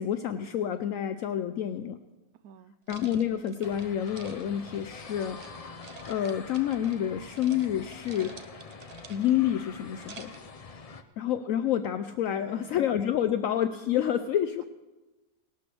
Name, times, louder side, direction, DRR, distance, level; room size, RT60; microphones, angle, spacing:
voice 1, 0.0-2.0 2.9-8.4 9.1-10.3 11.2-14.6, left 10 dB, 70° left, 9 dB, 0.9 m, -29 dB
voice 2, 2.4-2.7 12.2-12.7, right 8 dB, 80° right, 14 dB, 1.1 m, -48 dB
sound 1, 2.9-5.5 5.8-7.1 7.3-7.7 7.9-9.5 9.9-10.5, right 5 dB, 40° right, 0.5 m, -49 dB
sound 2, 3.6-11.0, left 4 dB, 45° left, 0.4 m, -45 dB
18.5 x 12.0 x 3.3 m, 1.1 s
omnidirectional pair, 1.6 m